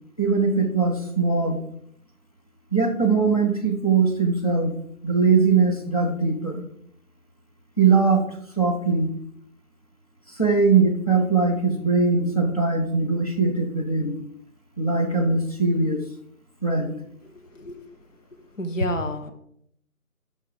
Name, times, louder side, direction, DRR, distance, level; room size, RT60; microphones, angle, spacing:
voice 1, 0.2-1.6 2.7-4.7 5.0-6.6 7.8-8.2 8.6-9.1 10.4-14.2 14.8-16.0 16.6-16.9, right 4 dB, 25° left, 1 dB, 0.8 m, -21 dB
voice 2, 17.3-17.8 18.5-19.3, left 1 dB, 60° left, 7 dB, 1.0 m, -30 dB
7.0 x 5.8 x 4.8 m, 0.69 s
figure-of-eight pair, 170°, 43 cm